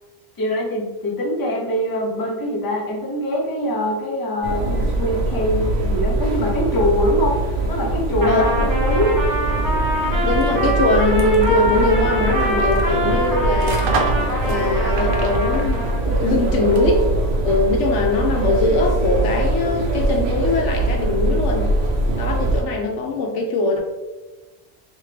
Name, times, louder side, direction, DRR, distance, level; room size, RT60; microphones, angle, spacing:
voice 1, 0.4-9.3, equal, 20° left, -2 dB, 0.6 m, -23 dB
sound 1, 4.4-22.6, right 2 dB, 75° right, 1.1 m, -22 dB
Trumpet, 8.2-16.0, equal, 20° right, 0.7 m, -24 dB
voice 2, 10.2-14.0 14.4-17.1 17.4-21.7 22.2-23.8, left 2 dB, 75° left, 1 dB, 1.1 m, -21 dB
sound 2, 10.3-17.1, right 2 dB, 55° right, 0.7 m, -32 dB
3.6 x 3.5 x 3.2 m, 1.2 s
omnidirectional pair, 1.2 m